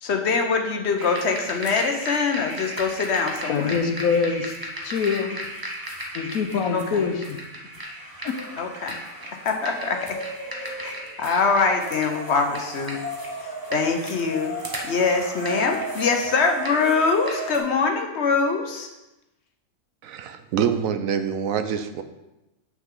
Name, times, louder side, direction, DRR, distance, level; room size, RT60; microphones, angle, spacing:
voice 1, 0.0-3.8 6.7-7.0 8.6-9.0 9.3-10.2 10.8-10.9 11.2-13.0 13.4-14.6 14.8-18.9, left 4 dB, 55° left, 4 dB, 1.1 m, -23 dB
sound 1, 1.0-17.6, equal, 20° right, 0.8 m, -34 dB
voice 2, 3.5-4.5 4.8-5.4 6.1-7.4 8.2-8.3, left 5 dB, 90° left, 6 dB, 1.3 m, -24 dB
voice 3, 20.0-22.0, right 8 dB, 75° right, 9 dB, 1.0 m, -25 dB
7.9 x 6.1 x 3.8 m, 0.97 s
omnidirectional pair, 1.4 m